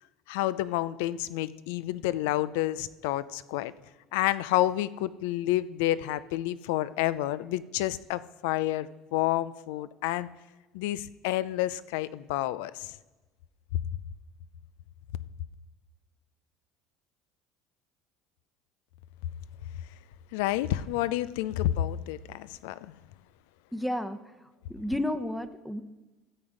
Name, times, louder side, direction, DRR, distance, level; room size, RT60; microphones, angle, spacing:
voice 1, 0.3-3.7 4.1-10.3 10.7-12.9 20.3-22.9, left 14 dB, 80° left, 17 dB, 0.4 m, -29 dB
voice 2, 23.7-24.2 24.7-25.8, left 1 dB, ahead, 9 dB, 0.8 m, -31 dB
13.5 x 7.9 x 5.0 m, 1.2 s
hypercardioid pair, 80°, 0 cm